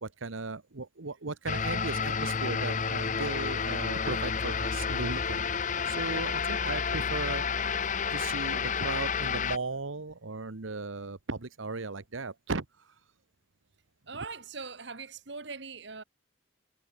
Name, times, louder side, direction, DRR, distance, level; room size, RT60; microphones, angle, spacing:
voice 1, 0.0-5.4 5.8-7.4 8.1-12.9, right 3 dB, 80° right, 1.2 m, -36 dB
sound 1, 1.5-9.6, left 6 dB, 40° left, 0.9 m, -30 dB
voice 2, 14.1-16.0, right 4 dB, 60° right, 1.7 m, -41 dB
head